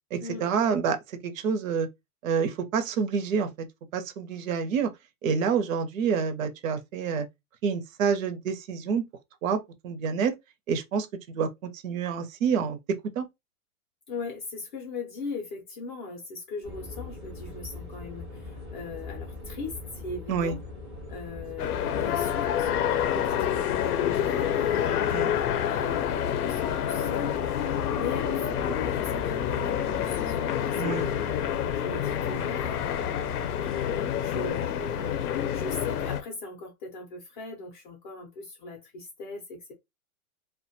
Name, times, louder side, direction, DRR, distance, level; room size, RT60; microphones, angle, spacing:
voice 1, 0.1-1.9 2.2-3.5 3.9-4.9 5.2-7.3 7.6-9.1 9.4-10.3 10.7-12.8 13.2-13.3 20.3-20.6 25.1-25.3 30.8-31.1, right 6 dB, 60° right, 0.6 m, -28 dB
voice 2, 14.1-20.6 21.1-31.2 31.7-33.3 34.2-39.7, left 4 dB, 35° left, 0.5 m, -39 dB
sound 1, 16.6-34.3, left 2 dB, 20° right, 0.3 m, -41 dB
sound 2, 21.6-36.2, left 10 dB, 85° left, 0.6 m, -28 dB
2.3 x 2.2 x 2.6 m
hypercardioid pair, 145°, 44 cm